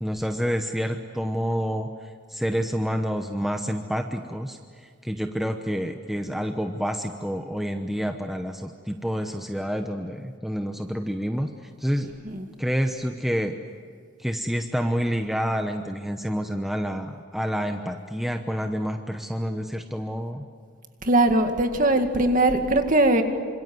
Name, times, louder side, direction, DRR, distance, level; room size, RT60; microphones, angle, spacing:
voice 1, 0.0-12.1 12.6-13.6 14.2-20.4, equal, ahead, 5 dB, 0.9 m, -28 dB
voice 2, 21.0-23.2, right 2 dB, 40° right, 6 dB, 2.2 m, -20 dB
27.5 x 26.5 x 7.9 m, 2.1 s
head